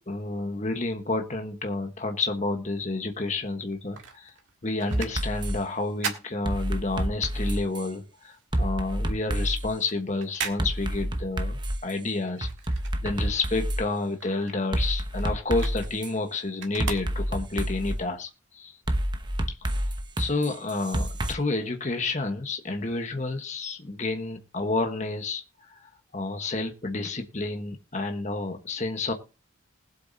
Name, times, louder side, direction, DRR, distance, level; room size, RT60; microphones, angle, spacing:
voice 1, 0.1-4.3 4.6-12.5 13.0-18.8 19.6-19.8 20.2-25.4 25.7-29.1, left 3 dB, 35° left, 5 dB, 1.2 m, -30 dB
sound 1, 3.5-7.2 7.6-13.5 13.8-17.6 18.2-18.3, right 5 dB, 70° right, 1.8 m, -40 dB
sound 2, 4.9-5.6 6.4-7.9 8.5-9.7 10.6-11.9 12.4-13.8 14.7-16.1 16.8-18.0 18.9-21.3, right 1 dB, 20° right, 0.8 m, -28 dB
20.0 x 7.9 x 2.7 m, 0.31 s
head